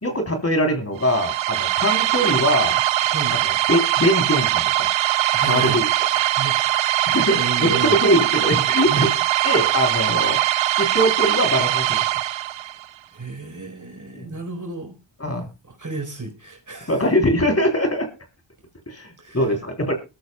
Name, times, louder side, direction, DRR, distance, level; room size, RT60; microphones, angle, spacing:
voice 1, 0.0-2.8 3.4-4.9 5.4-5.9 7.1-9.1 9.4-10.4 10.8-12.1 14.1-14.4 15.2-15.4 16.9-18.1 18.9-19.9, equal, 35° left, 5 dB, 3.4 m, -22 dB
sound 1, 1.0-12.8, right 13 dB, 85° right, 0.6 m, -21 dB
voice 2, 3.0-3.4 5.3-6.7 7.0-8.0 8.9-9.1 13.1-15.0 15.6-17.0 19.2-19.5, right 3 dB, 40° right, 5 dB, 4.2 m, -32 dB
21.0 x 13.5 x 2.3 m, 0.28 s
cardioid pair, 40°, 44 cm